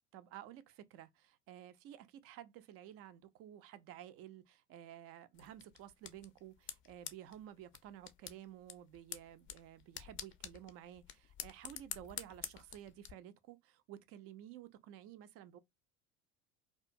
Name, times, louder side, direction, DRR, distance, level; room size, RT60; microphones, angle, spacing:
voice 1, 0.1-15.6, right 11 dB, 40° right, 0.4 m, -53 dB
sound 1, 5.3-13.1, left 10 dB, 35° left, 0.4 m, -49 dB
2.4 x 2.3 x 2.5 m
hypercardioid pair, 70°, 35 cm